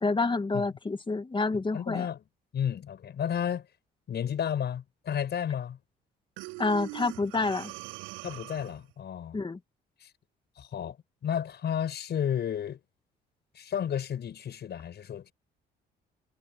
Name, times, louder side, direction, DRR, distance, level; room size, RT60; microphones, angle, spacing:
voice 1, 0.0-2.1 6.6-7.7 9.3-9.6, left 3 dB, 25° left, 2.1 m, -28 dB
voice 2, 1.7-2.2 2.5-3.7 4.1-5.8 8.2-9.4 10.0-10.1 10.6-11.0 11.2-12.8 13.5-15.3, left 9 dB, 60° left, 5.6 m, -32 dB
Breathing, 6.4-8.9, right 24 dB, 90° right, 7.1 m, -42 dB
supercardioid pair, 70°, 20 cm